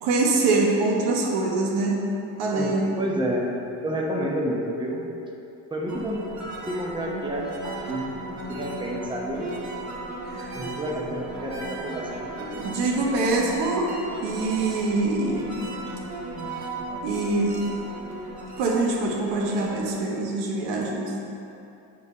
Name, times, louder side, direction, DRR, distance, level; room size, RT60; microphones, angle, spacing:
voice 1, 0.0-2.0 2.4-2.9 10.3-10.5 12.6-13.9 14.2-15.5 17.0-17.6 18.6-21.1, right 3 dB, 75° right, -2 dB, 1.3 m, -24 dB
voice 2, 2.5-3.5 3.8-5.1 5.7-6.3 6.7-8.2 8.5-9.5 10.5-12.6, equal, 10° right, -2 dB, 1.0 m, -30 dB
sound 1, 5.9-19.9, right 2 dB, 35° right, 1.5 m, -36 dB
7.7 x 3.4 x 5.4 m, 2.7 s
supercardioid pair, 80°, 50 cm